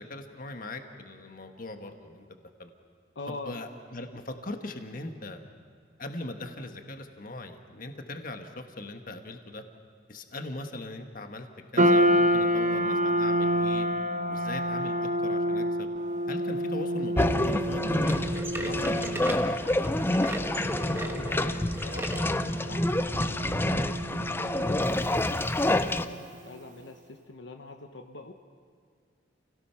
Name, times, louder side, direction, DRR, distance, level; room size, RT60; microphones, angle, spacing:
voice 1, 0.0-2.7 3.3-5.4 6.0-9.6 10.1-11.5 11.7-13.9 14.3-15.9 16.3-20.0, left 2 dB, 50° left, 6 dB, 1.5 m, -40 dB
voice 2, 3.1-3.6 20.8-28.3, left 2 dB, 75° left, 5 dB, 1.1 m, -44 dB
sound 1, 11.8-26.2, equal, 40° right, 1.1 m, -29 dB
sound 2, 17.2-26.1, left 1 dB, 10° left, 0.5 m, -28 dB
sound 3, 18.0-22.3 22.8-22.9 23.6-23.7 24.6-24.7, right 1 dB, 15° right, 1.2 m, -38 dB
29.0 x 17.5 x 5.8 m, 2.1 s
head